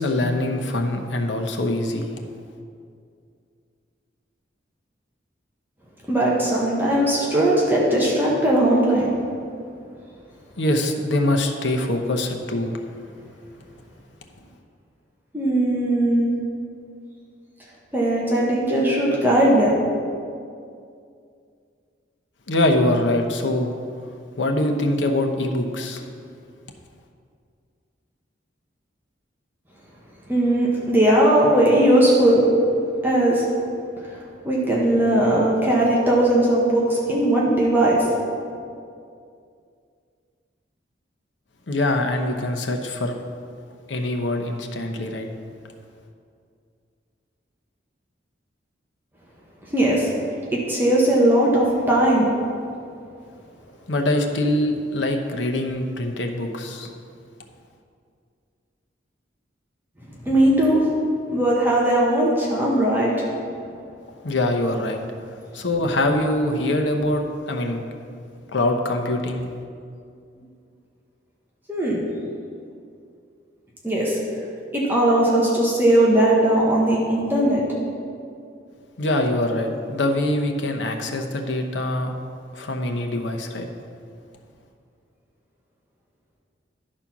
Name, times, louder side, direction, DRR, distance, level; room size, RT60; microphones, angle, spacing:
voice 1, 0.0-2.2 10.6-12.8 22.5-23.7 24.4-26.0 41.7-43.2 43.9-45.3 53.9-56.9 64.2-65.0 65.5-67.8 68.5-69.5 79.0-82.1 82.5-83.7, left 1 dB, 80° left, 4 dB, 0.9 m, -23 dB
voice 2, 6.1-9.2 15.3-16.3 17.9-19.8 30.3-32.4 33.0-33.4 34.4-38.1 49.7-50.1 50.5-52.3 60.3-60.8 61.3-63.1 71.7-72.0 73.8-74.2 74.7-77.6, right 1 dB, 10° right, -5 dB, 1.2 m, -19 dB
11.0 x 4.3 x 6.0 m, 2.4 s
head